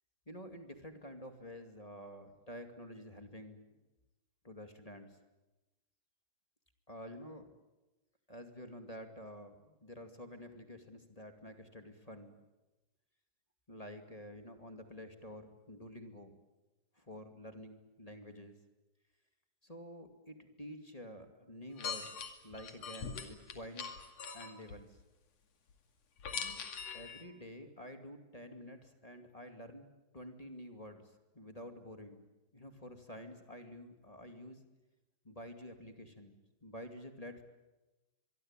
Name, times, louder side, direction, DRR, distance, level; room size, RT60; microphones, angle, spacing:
voice 1, 0.3-3.6 4.4-5.2 6.9-7.5 8.3-12.4 13.7-16.3 17.0-18.6 19.6-23.9 24.3-25.0 26.3-26.6 26.9-32.3 32.5-34.7 35.2-37.4, equal, 15° left, 5 dB, 2.0 m, -49 dB
sound 1, 21.8-24.8 26.2-27.2, left 6 dB, 60° left, 3.4 m, -42 dB
25.5 x 23.5 x 9.0 m, 1.1 s
omnidirectional pair, 3.4 m